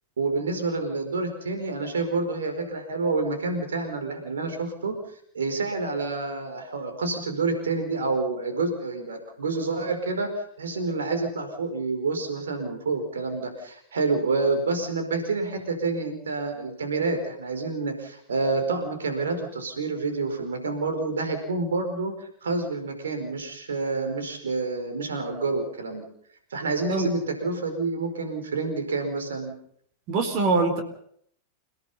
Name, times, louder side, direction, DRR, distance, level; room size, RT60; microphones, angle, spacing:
voice 1, 0.2-4.9 5.3-26.0 26.5-29.5, right 3 dB, 70° right, 6 dB, 4.9 m, -28 dB
voice 2, 30.1-30.8, right 3 dB, 40° right, 7 dB, 4.1 m, -23 dB
29.0 x 17.5 x 5.5 m, 0.65 s
figure-of-eight pair, 90°, 0 cm